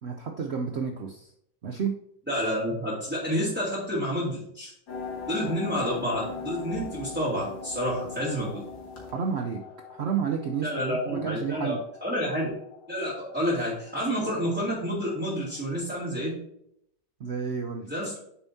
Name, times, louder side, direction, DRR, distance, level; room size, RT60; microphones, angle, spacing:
voice 1, 0.0-1.3 1.6-2.0 9.1-9.6 9.9-11.8 17.2-17.9, right 6 dB, 80° right, 3 dB, 0.5 m, -30 dB
voice 2, 2.3-4.7 5.2-8.6 10.6-11.7 12.0-12.5 12.9-16.3 17.9-18.1, equal, 5° right, -9 dB, 2.9 m, -29 dB
sound 1, 4.9-15.6, left 4 dB, 85° left, 2.7 m, -41 dB
9.0 x 7.0 x 2.7 m, 0.73 s
omnidirectional pair, 2.0 m